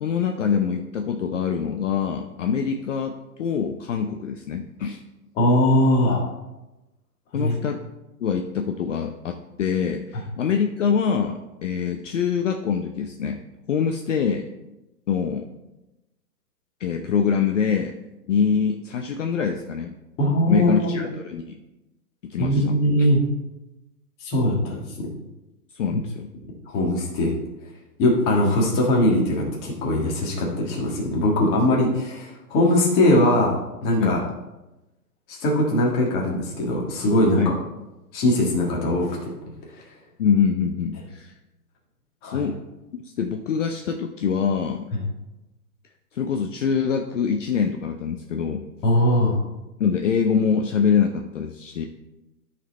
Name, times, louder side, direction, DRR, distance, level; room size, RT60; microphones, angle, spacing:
voice 1, 0.0-3.1 3.4-5.0 7.3-7.8 8.2-13.4 13.7-14.5 15.1-15.5 16.8-17.9 18.3-19.9 20.5-21.6 22.3-22.8 25.7-26.3 34.0-34.2 37.4-37.6 40.2-41.3 42.3-42.6 43.2-44.9 46.1-48.7 49.8-51.9, left 7 dB, 50° left, 4 dB, 0.7 m, -24 dB
voice 2, 5.4-6.2 7.3-7.5 20.2-21.0 22.4-23.2 24.2-25.1 25.9-26.0 26.7-27.3 28.0-33.6 33.8-34.2 35.3-37.5 38.1-39.3 39.7-39.8 42.2-42.4 48.8-49.4, left 1 dB, 20° left, -1 dB, 1.6 m, -21 dB
12.5 x 4.3 x 4.2 m, 1.0 s
hypercardioid pair, 145°, 48 cm